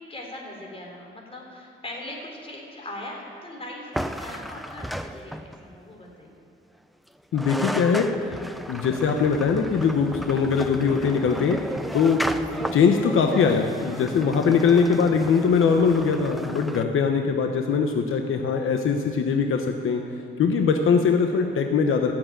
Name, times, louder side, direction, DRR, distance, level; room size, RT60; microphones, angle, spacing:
voice 1, 0.1-6.4 20.3-20.5, left 1 dB, 25° left, -1 dB, 3.9 m, -40 dB
sound 1, 3.9-5.7 7.1-7.2 7.3-16.8, equal, ahead, 0.6 m, -34 dB
voice 2, 7.3-8.1 8.7-11.6 11.9-12.3 12.7-20.0 20.4-22.1, left 5 dB, 80° left, 4 dB, 1.1 m, -21 dB
16.5 x 7.8 x 9.0 m, 2.5 s
cardioid pair, 105°, 21 cm